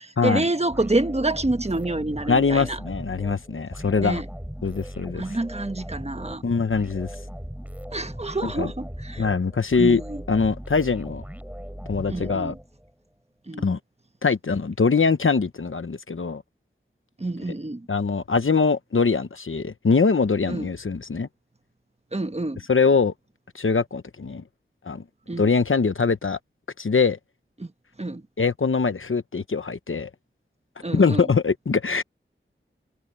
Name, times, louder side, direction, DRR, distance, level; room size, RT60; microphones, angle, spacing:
voice 1, 0.0-2.8 4.0-4.3 5.1-6.4 7.9-9.3 9.8-10.2 12.1-12.6 13.5-13.7 17.2-17.9 20.5-20.7 22.1-22.6 25.3-25.5 27.6-27.7 28.0-28.3 30.8-31.3, right 2 dB, 30° right, 1.4 m, -28 dB
sound 1, 0.7-12.9, equal, 5° right, 7.2 m, -38 dB
voice 2, 2.3-4.2 4.6-5.2 6.4-7.1 8.6-8.7 9.2-10.0 10.3-11.2 11.9-12.5 13.6-13.8 14.2-16.4 17.9-21.3 22.7-23.1 23.5-24.4 24.8-25.0 25.4-26.4 26.8-27.2 28.4-30.1 30.9-32.0, left 4 dB, 75° left, 0.9 m, -22 dB
wide cardioid pair, 55°, 21 cm